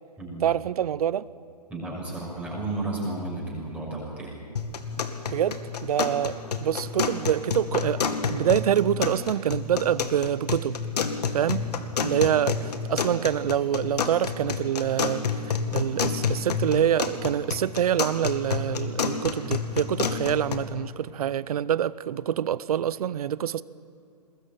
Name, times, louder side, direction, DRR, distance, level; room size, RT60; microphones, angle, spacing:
voice 1, 0.4-1.3 5.0-8.0 8.3-10.8 11.3-11.7 12.0-23.6, right 10 dB, 65° right, 0.8 m, -26 dB
voice 2, 1.7-4.4 11.7-11.8, right 2 dB, 5° right, 6.2 m, -33 dB
sound 1, 4.6-20.6, left 5 dB, 70° left, 2.3 m, -29 dB
22.0 x 21.0 x 9.1 m
hypercardioid pair, 135°, 21 cm